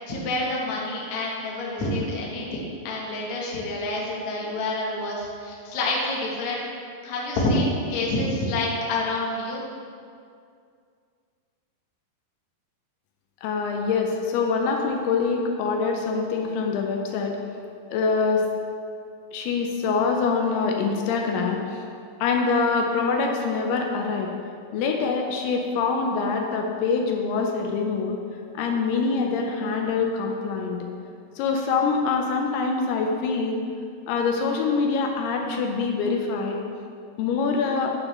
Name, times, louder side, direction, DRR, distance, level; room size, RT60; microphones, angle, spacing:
voice 1, 0.1-6.6 7.0-9.6, left 2 dB, 60° left, -3 dB, 2.0 m, -27 dB
voice 2, 13.4-17.4 17.9-18.4 19.3-21.8 22.2-24.3 24.7-28.2 28.5-30.9 31.4-33.6 34.1-36.6 37.2-37.9, left 4 dB, 85° left, 2 dB, 2.6 m, -24 dB
9.5 x 6.5 x 3.2 m, 2.3 s
omnidirectional pair, 4.6 m